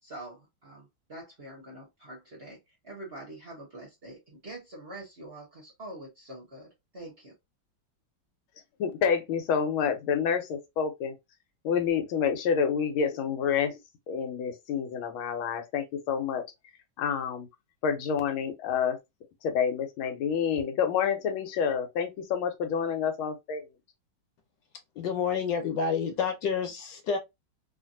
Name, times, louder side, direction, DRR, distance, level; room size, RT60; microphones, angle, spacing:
voice 1, 0.0-7.3, right 1 dB, 40° right, 0.9 m, -45 dB
voice 2, 8.8-11.1 11.6-13.8 14.1-16.4 17.0-17.5 17.8-19.0 19.4-23.7, left 7 dB, 85° left, 1.6 m, -28 dB
voice 3, 25.0-27.2, left 6 dB, 70° left, 1.3 m, -29 dB
3.2 x 2.5 x 2.6 m
omnidirectional pair, 2.2 m